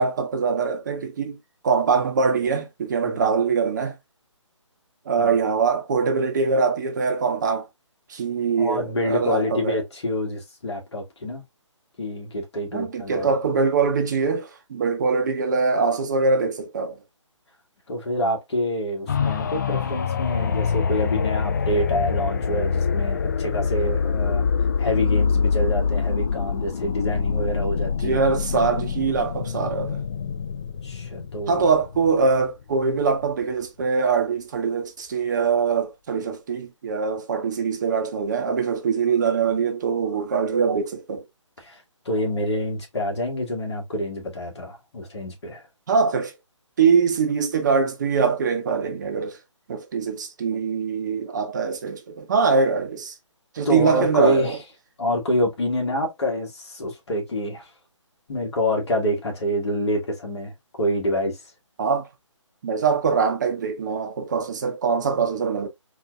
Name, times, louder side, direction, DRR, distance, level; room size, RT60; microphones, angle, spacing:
voice 1, 0.0-1.4 1.6-3.9 5.1-7.7 8.1-9.8 12.7-17.0 28.0-30.0 31.5-41.2 45.9-46.3 46.8-49.4 49.7-53.2 53.5-54.6 61.8-62.1 62.6-65.7, right 5 dB, 35° right, 0.7 m, -23 dB
voice 2, 3.0-3.3 5.2-5.3 8.6-11.4 12.0-13.3 17.9-24.5 24.8-28.2 30.8-31.7 41.6-45.6 53.7-54.5 55.0-57.7 58.3-60.5 60.8-61.4, equal, 60° left, 1.7 m, -27 dB
sound 1, 19.1-32.7 33.2-33.3, left 6 dB, 35° left, 0.3 m, -25 dB
4.1 x 2.5 x 2.3 m
figure-of-eight pair, 150°, 16 cm